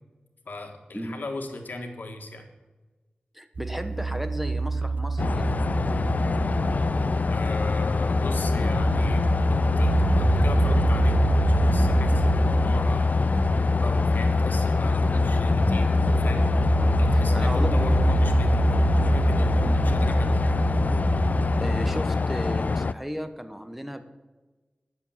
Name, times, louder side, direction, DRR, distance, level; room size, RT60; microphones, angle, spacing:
voice 1, 0.5-2.5 7.3-9.2 9.5-11.3 11.6-13.1 13.8-16.5 17.0-20.7, left 2 dB, 85° left, 4 dB, 1.6 m, -37 dB
voice 2, 3.3-5.6 16.7-17.0 17.3-17.9 19.6-19.9 21.6-24.0, equal, 5° right, 8 dB, 1.1 m, -34 dB
sound 1, 3.6-22.0, right 3 dB, 75° right, 0.5 m, -27 dB
sound 2, 5.2-22.9, left 4 dB, 60° left, 0.3 m, -24 dB
sound 3, 8.7-23.0, equal, 30° right, 4.1 m, -38 dB
11.0 x 7.2 x 7.3 m, 1.2 s
wide cardioid pair, 60°, 3 cm